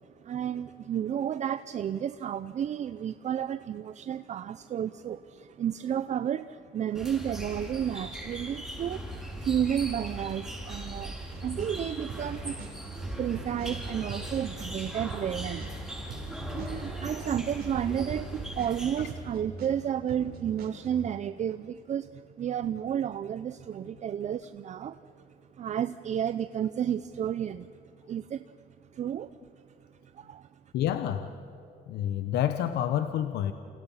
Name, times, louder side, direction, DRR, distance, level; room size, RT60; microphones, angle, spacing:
voice 1, 0.2-11.2 11.4-25.0 25.6-27.7 28.1-28.5 28.9-29.4 30.1-30.5, right 9 dB, 45° right, 13 dB, 0.6 m, -32 dB
sound 1, 6.9-19.4, equal, ahead, 7.7 m, -39 dB
sound 2, 11.3-11.8 12.1-15.8 16.1-19.8 20.1-21.1, right 5 dB, 70° right, 6.4 m, -42 dB
voice 2, 30.7-31.3 31.9-33.5, left 10 dB, 75° left, 9 dB, 1.1 m, -29 dB
29.0 x 29.0 x 5.8 m, 2.9 s
cardioid pair, 110°, 17 cm